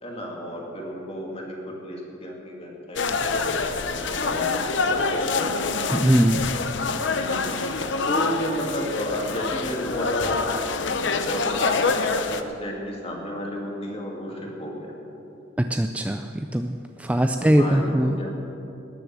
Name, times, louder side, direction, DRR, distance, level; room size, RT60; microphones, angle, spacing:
voice 1, 0.0-5.8 7.4-7.6 8.1-10.6 11.1-14.9 17.4-18.3, equal, 30° left, -1 dB, 2.4 m, -33 dB
sound 1, 3.0-12.4, left 4 dB, 65° left, 0.7 m, -26 dB
voice 2, 5.9-6.4 15.7-18.2, right 1 dB, 5° right, 6 dB, 0.3 m, -21 dB
19.5 x 6.8 x 7.4 m, 2.9 s
head